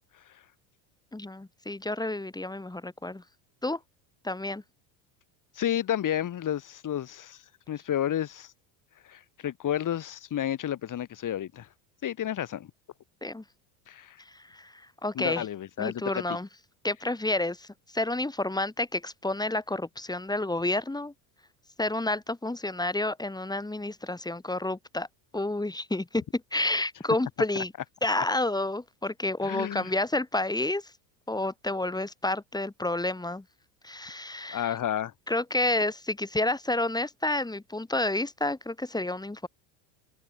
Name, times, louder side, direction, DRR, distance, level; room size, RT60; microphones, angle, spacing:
voice 1, 1.1-3.2 3.6-3.8 4.2-4.6 13.2-13.4 14.5-14.7 15.0-15.4 15.8-16.5 16.8-17.7 17.9-21.1 21.8-25.1 25.3-27.7 28.0-30.8 31.3-33.4 33.8-34.7 35.3-39.5, left 2 dB, 10° left, 5.1 m, -30 dB
voice 2, 5.6-7.4 7.7-8.5 9.1-11.7 12.0-12.7 13.9-14.2 15.1-16.2 27.6-27.7 29.4-29.9 34.5-35.1, left 10 dB, 40° left, 4.3 m, -31 dB
supercardioid pair, 110°, 49 cm